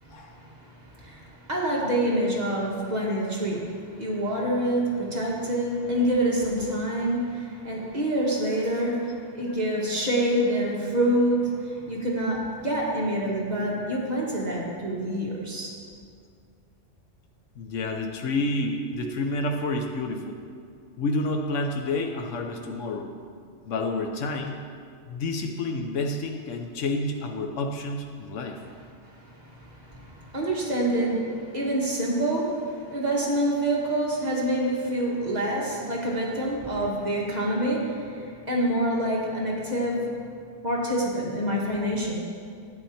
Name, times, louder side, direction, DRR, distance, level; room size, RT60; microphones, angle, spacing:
voice 1, 0.0-15.7 29.1-40.1 40.6-42.1, right 1 dB, 35° right, -4 dB, 1.8 m, -27 dB
voice 2, 17.6-20.4 21.0-23.1 23.7-24.6 25.1-28.6, left 2 dB, 85° left, 3 dB, 1.2 m, -29 dB
11.0 x 8.9 x 4.3 m, 2.2 s
omnidirectional pair, 1.2 m